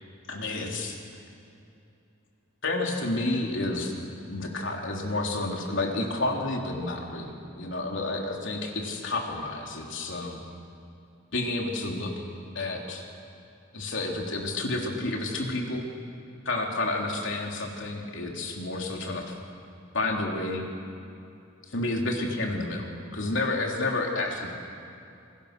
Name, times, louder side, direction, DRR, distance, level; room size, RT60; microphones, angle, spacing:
voice 1, 0.3-1.0 2.6-4.0 4.3-10.4 11.3-12.1 12.5-13.0 13.7-15.8 16.4-19.4 19.9-20.6 21.7-24.5, left 2 dB, 65° left, 0 dB, 3.4 m, -30 dB
27.5 x 20.5 x 6.7 m, 2.6 s
head